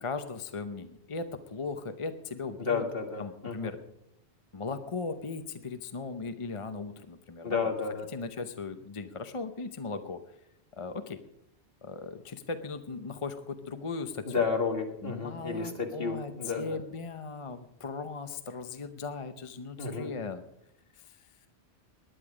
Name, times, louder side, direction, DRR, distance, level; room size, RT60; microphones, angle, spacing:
voice 1, 0.0-2.8 3.2-3.8 4.5-7.7 8.1-10.2 10.8-11.2 11.8-14.4 15.0-20.4 21.0-21.2, left 4 dB, 35° left, 9 dB, 0.8 m, -38 dB
voice 2, 2.6-3.7 7.4-8.1 14.3-16.8 19.8-20.1, left 5 dB, 60° left, 3 dB, 2.2 m, -31 dB
19.0 x 10.5 x 5.0 m, 0.79 s
omnidirectional pair, 1.1 m